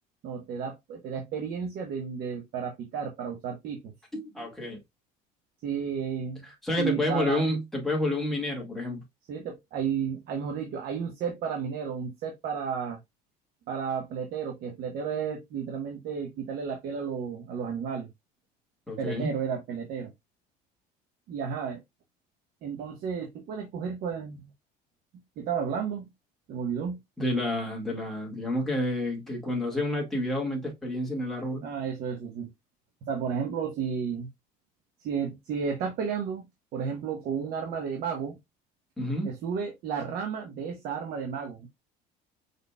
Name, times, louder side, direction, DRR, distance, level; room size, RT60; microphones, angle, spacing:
voice 1, 0.2-3.9 5.6-6.5 6.8-7.5 9.3-13.0 13.7-18.1 19.0-20.1 21.3-21.8 22.6-24.5 25.4-26.1 26.5-27.0 31.6-32.5 33.1-34.3 35.0-38.4 39.2-41.7, right 6 dB, 55° right, 1.1 m, -32 dB
voice 2, 4.1-4.8 6.4-9.0 18.9-19.3 27.2-31.6 39.0-39.3, left 1 dB, ahead, 1.9 m, -29 dB
5.1 x 4.1 x 2.3 m
cardioid pair, 140°, 18 cm